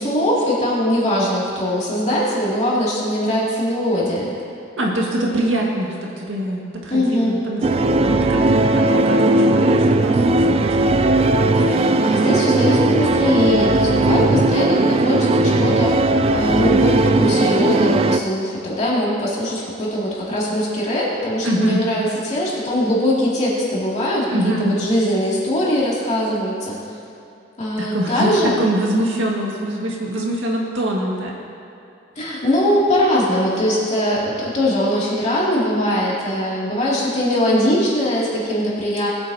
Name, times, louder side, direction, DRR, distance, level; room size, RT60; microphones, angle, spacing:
voice 1, 0.0-4.4 6.9-7.5 11.6-26.8 27.6-28.5 32.2-39.1, equal, 35° left, -6 dB, 2.7 m, -21 dB
voice 2, 4.8-10.7 21.4-21.8 24.3-24.7 27.8-31.4, right 1 dB, 70° right, -2 dB, 1.9 m, -24 dB
sound 1, 7.6-18.2, right 2 dB, 30° right, 0.3 m, -17 dB
20.0 x 8.8 x 2.9 m, 2.6 s
head